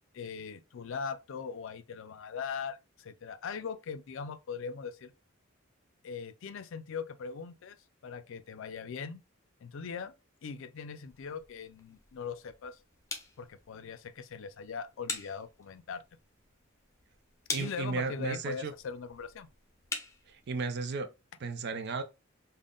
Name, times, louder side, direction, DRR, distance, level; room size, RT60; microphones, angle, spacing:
voice 1, 0.1-5.1 6.0-7.8 8.0-9.2 9.6-10.1 10.4-12.8 13.4-16.0 17.6-19.5, left 6 dB, 65° left, 0.4 m, -40 dB
sound 1, 11.1-20.8, left 3 dB, 15° left, 0.7 m, -45 dB
voice 2, 17.5-18.7 20.3-21.1 21.4-22.0, right 4 dB, 50° right, 0.4 m, -34 dB
3.6 x 2.2 x 3.7 m
head